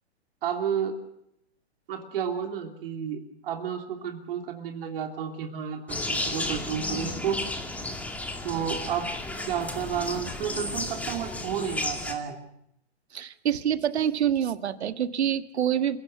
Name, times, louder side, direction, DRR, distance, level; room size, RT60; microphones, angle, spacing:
voice 1, 0.4-1.0 1.9-7.4 8.4-9.1 9.5-12.4, right 8 dB, 55° right, 4 dB, 3.2 m, -31 dB
sound 1, 5.9-12.1, left 2 dB, 5° left, 2.5 m, -33 dB
voice 2, 13.1-16.0, right 9 dB, 70° right, 10 dB, 1.7 m, -26 dB
28.5 x 16.5 x 7.9 m, 0.79 s
hypercardioid pair, 135°, 34 cm